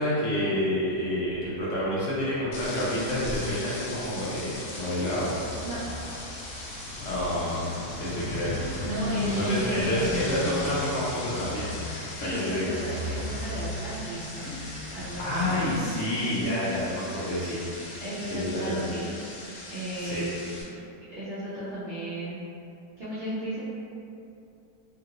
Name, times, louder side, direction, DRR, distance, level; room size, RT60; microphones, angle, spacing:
voice 1, 0.0-5.3 7.0-7.6 8.0-8.7 9.3-11.7 12.2-12.7 15.2-18.0 18.3-18.8 20.0-20.3, left 1 dB, 65° left, -8 dB, 0.8 m, -29 dB
Car passing by / Truck, 1.4-15.8, left 1 dB, 45° right, 1.0 m, -36 dB
sound 1, 2.5-20.6, left 2 dB, 85° left, 1.2 m, -40 dB
voice 2, 7.3-7.7 8.6-10.1 12.2-14.5 14.9-15.4 18.0-19.2 19.7-20.8 21.1-22.5 23.0-23.6, equal, 65° right, -12 dB, 0.6 m, -35 dB
2.9 x 2.5 x 2.8 m, 2.7 s
omnidirectional pair, 1.9 m